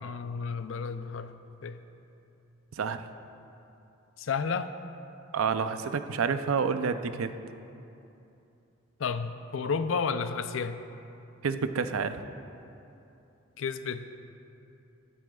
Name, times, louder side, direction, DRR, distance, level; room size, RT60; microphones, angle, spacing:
voice 1, 0.0-1.4 1.6-1.8 4.2-4.7 9.0-10.8 13.6-14.1, left 5 dB, 65° left, 10 dB, 0.5 m, -32 dB
voice 2, 5.3-7.3 11.4-12.2, right 5 dB, 85° right, 10 dB, 0.5 m, -29 dB
19.5 x 9.8 x 2.3 m, 2.8 s
head